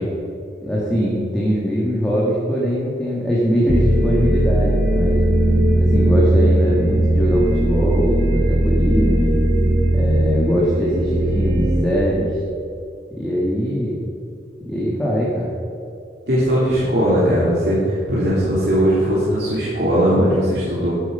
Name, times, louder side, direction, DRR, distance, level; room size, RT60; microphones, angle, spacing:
voice 1, 0.6-5.2 5.8-9.4 9.9-12.4 13.2-14.0 14.6-15.5, equal, 5° left, -7 dB, 1.9 m, -21 dB
sound 1, 3.7-11.8, right 1 dB, 85° right, 2.6 m, -18 dB
voice 2, 16.3-20.9, equal, 65° right, -9 dB, 3.3 m, -18 dB
13.0 x 9.9 x 5.6 m, 2.6 s
head